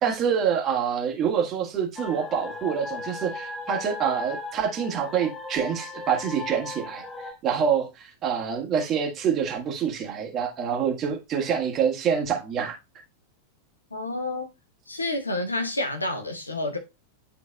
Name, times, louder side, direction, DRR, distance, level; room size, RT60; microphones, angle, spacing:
voice 1, 0.0-7.0 7.4-12.8, right 7 dB, 30° right, 1.7 m, -26 dB
sound 1, 2.0-7.3, left 3 dB, 15° left, 1.0 m, -37 dB
voice 2, 13.9-14.5 14.9-16.8, left 2 dB, 80° left, 1.0 m, -29 dB
11.0 x 3.8 x 2.3 m
figure-of-eight pair, 90°, 0 cm